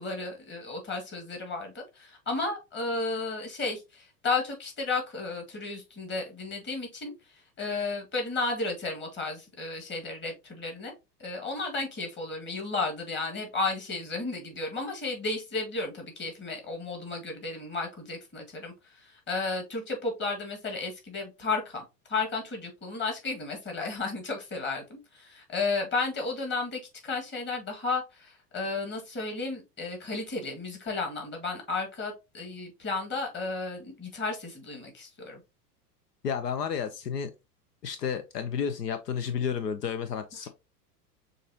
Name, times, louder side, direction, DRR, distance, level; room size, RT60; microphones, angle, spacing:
voice 1, 0.0-10.9 11.2-21.8 22.1-35.4 40.4-40.5, left 3 dB, 25° left, 1.8 m, -33 dB
voice 2, 36.2-37.3 37.8-40.5, left 7 dB, 80° left, 0.7 m, -31 dB
6.4 x 2.6 x 2.8 m
figure-of-eight pair, 90°, 48 cm